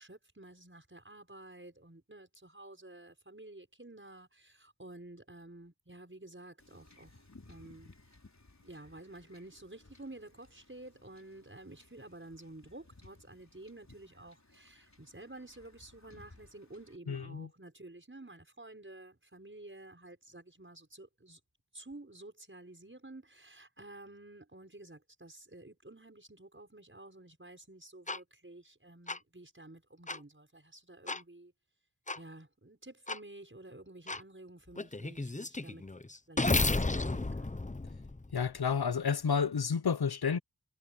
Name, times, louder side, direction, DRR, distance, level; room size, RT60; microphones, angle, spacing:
voice 1, 0.0-7.9 8.6-21.4 21.7-31.5 32.1-35.8 36.3-37.5, right 2 dB, 30° right, 6.3 m, -51 dB
Wind / Ocean / Boat Water vehicle, 6.6-17.0, left 2 dB, 45° left, 4.0 m, -60 dB
voice 2, 17.1-17.5 38.3-40.4, left 6 dB, 70° left, 0.9 m, -30 dB
sound 1, 28.1-28.2 29.1-29.2 30.1-30.2 31.1-31.2 32.1-32.2 33.1-33.2 34.1-34.2 34.8-38.6, left 2 dB, 20° left, 0.8 m, -33 dB
wide cardioid pair, 40°, 39 cm